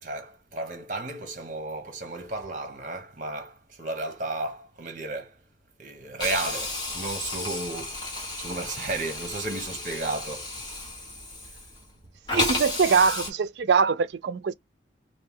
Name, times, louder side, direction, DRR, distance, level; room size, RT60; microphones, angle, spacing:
voice 1, 0.0-5.4 5.8-10.9, right 2 dB, 45° right, 1.0 m, -34 dB
Hiss, 6.2-11.9 12.3-13.3, left 2 dB, 25° left, 1.4 m, -33 dB
voice 2, 12.3-14.5, right 5 dB, 75° right, 0.4 m, -23 dB
3.1 x 2.6 x 3.5 m
head